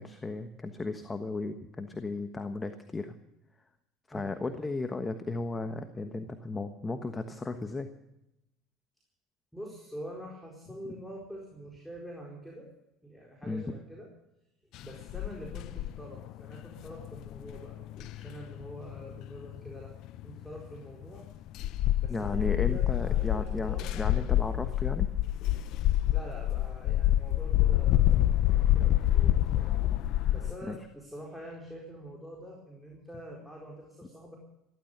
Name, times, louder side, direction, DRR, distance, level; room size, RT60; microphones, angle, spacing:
voice 1, 0.0-3.2 4.1-7.9 13.5-13.6 22.1-25.1 30.7-30.8, left 3 dB, 20° left, 8 dB, 1.3 m, -35 dB
voice 2, 9.5-12.7 13.0-14.1 14.8-19.9 20.2-21.3 22.0-24.8 26.1-34.4, equal, 5° left, -1 dB, 4.5 m, -46 dB
sound 1, 14.7-20.8 21.0-30.6, left 13 dB, 60° left, 0.6 m, -27 dB
15.5 x 13.5 x 6.7 m, 0.86 s
hypercardioid pair, 75°, 0 cm